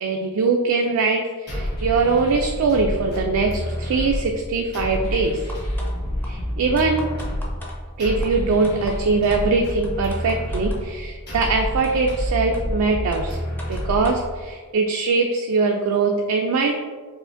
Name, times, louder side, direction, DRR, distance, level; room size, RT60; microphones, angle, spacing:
voice 1, 0.0-5.4 6.3-7.0 8.0-13.4 13.7-16.7, right 4 dB, 70° right, 2 dB, 0.3 m, -22 dB
sound 1, 1.5-14.5, equal, 50° left, 1.3 m, -29 dB
sound 2, 5.5-5.9 6.2-6.3 6.8-7.8 8.2-8.3 8.6-9.0 9.3-9.4 9.8-10.8 11.4-11.5 11.8-12.2 12.5-12.6 13.1-14.2, left 1 dB, 10° left, 0.4 m, -39 dB
4.7 x 2.4 x 2.5 m, 1.5 s
head